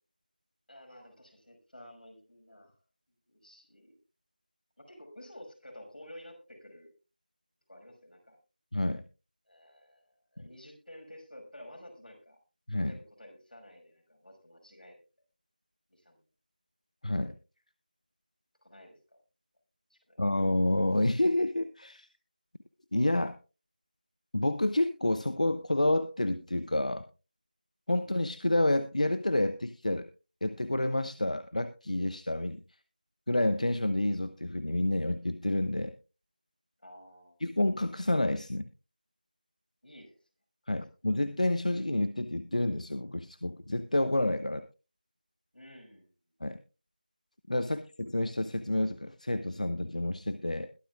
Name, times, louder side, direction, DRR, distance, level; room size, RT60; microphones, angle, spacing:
voice 1, 0.7-2.8 3.3-4.0 4.8-6.9 7.7-8.4 9.5-10.0 10.3-12.4 12.9-15.0 15.9-16.2 18.6-19.2 19.9-20.2 36.8-37.4 39.8-40.2 45.5-46.1, left 1 dB, 75° left, 3 dB, 5.8 m, -51 dB
voice 2, 8.7-9.0 12.7-12.9 17.0-17.3 20.2-22.1 22.9-23.4 24.3-27.0 27.9-30.1 30.4-32.6 33.3-35.9 37.4-38.7 40.7-44.6 46.4-46.6 47.5-50.7, left 1 dB, 50° left, 12 dB, 0.7 m, -29 dB
21.5 x 8.8 x 2.4 m, 0.31 s
figure-of-eight pair, 175°, 5 cm